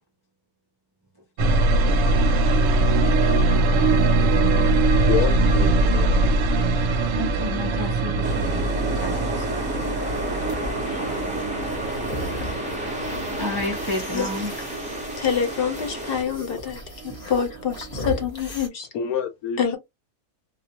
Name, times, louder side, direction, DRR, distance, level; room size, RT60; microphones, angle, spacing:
sound 1, 1.4-17.2 17.5-18.2, right 2 dB, 70° right, 0.9 m, -22 dB
voice 1, 5.0-6.3 18.9-19.6, left 9 dB, 75° left, 1.0 m, -28 dB
voice 2, 7.1-8.7 9.0-9.6 13.4-14.5, left 2 dB, 35° right, 0.4 m, -31 dB
sound 2, 8.2-16.2, equal, 5° right, 0.7 m, -31 dB
sound 3, 9.8-18.7, left 1 dB, 20° left, 0.9 m, -38 dB
voice 3, 15.2-18.9 19.6-19.8, left 7 dB, 50° left, 0.7 m, -26 dB
2.4 x 2.2 x 2.8 m
omnidirectional pair, 1.5 m